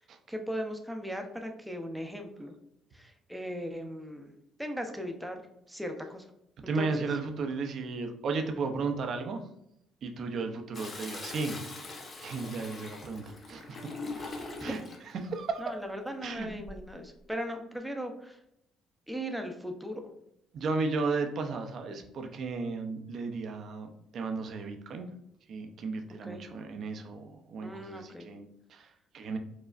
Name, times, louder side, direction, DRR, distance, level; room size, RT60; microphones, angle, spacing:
voice 1, 0.3-2.5 2.9-4.3 4.6-5.4 5.7-6.2 6.7-7.1 14.7-14.8 15.6-18.4 19.1-20.0 26.2-26.4 27.6-28.3, equal, 5° right, 4 dB, 0.6 m, -38 dB
voice 2, 6.7-9.4 10.0-11.6 12.2-13.8 14.6-14.8 15.2-15.6 16.2-16.5 20.5-25.1 25.5-29.4, right 4 dB, 55° right, 5 dB, 0.5 m, -34 dB
Toilet flush, 10.7-15.1 16.4-16.9, left 3 dB, 40° left, 0.7 m, -42 dB
4.8 x 2.1 x 2.4 m, 0.78 s
supercardioid pair, 75°, 0 cm